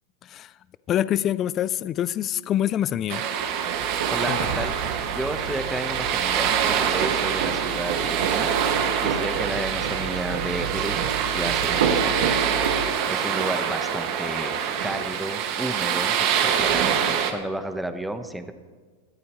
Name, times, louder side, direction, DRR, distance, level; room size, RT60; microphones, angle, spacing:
voice 1, 0.2-0.5 0.9-3.3 4.3-4.4, left 11 dB, 30° left, 17 dB, 0.4 m, -25 dB
sound 1, 3.1-17.3, right 8 dB, 55° right, 1.9 m, -25 dB
sound 2, 3.7-12.9, right 6 dB, 80° right, 1.7 m, -30 dB
voice 2, 4.1-8.5 9.0-12.4 13.1-17.0 17.3-18.5, right 1 dB, 5° right, 8 dB, 1.1 m, -32 dB
20.5 x 14.0 x 3.2 m, 1.5 s
supercardioid pair, 130°, 0 cm